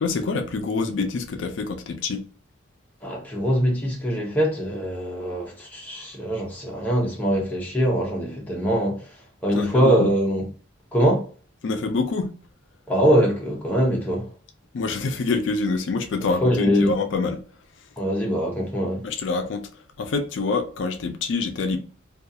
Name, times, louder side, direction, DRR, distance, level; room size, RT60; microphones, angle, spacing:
voice 1, 0.0-2.2 9.5-10.1 11.6-12.3 14.7-17.4 19.0-19.7 20.0-21.8, left 4 dB, 65° left, 0.4 m, -26 dB
voice 2, 3.0-9.1 9.4-10.5 10.9-11.3 12.9-14.3 16.2-16.9 18.0-19.1, equal, 10° left, 0.7 m, -22 dB
2.3 x 2.3 x 2.6 m
head